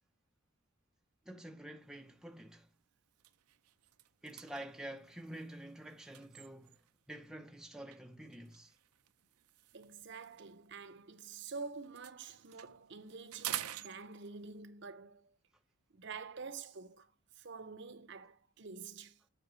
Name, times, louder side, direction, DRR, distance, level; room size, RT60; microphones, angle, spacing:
voice 1, 1.3-2.7 4.2-6.8 7.1-8.8, right 1 dB, 5° right, 0.5 m, -48 dB
sound 1, 1.9-2.2 2.6-2.8 3.1-7.0 7.9-11.5 11.8-14.6, right 13 dB, 90° right, 0.6 m, -48 dB
voice 2, 9.7-15.4 15.9-17.1 17.4-19.2, right 4 dB, 55° right, 0.7 m, -48 dB
8.0 x 5.7 x 6.7 m
head